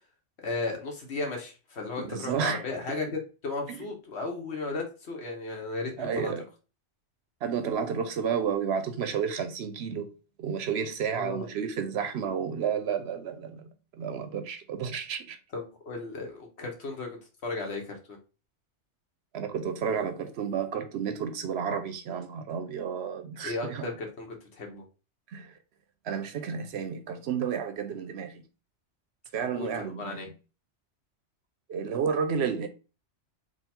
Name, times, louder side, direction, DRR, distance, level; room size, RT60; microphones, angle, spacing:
voice 1, 0.4-6.3 11.1-11.5 15.5-18.2 23.4-24.8 29.5-30.3, left 3 dB, 65° left, 1.3 m, -35 dB
voice 2, 2.0-2.6 3.7-3.9 6.0-6.4 7.4-10.1 10.4-15.4 19.3-23.9 25.3-25.5 26.0-28.4 29.3-30.3 31.7-32.7, right 7 dB, 70° right, 0.8 m, -31 dB
3.9 x 2.3 x 4.2 m
omnidirectional pair, 1.2 m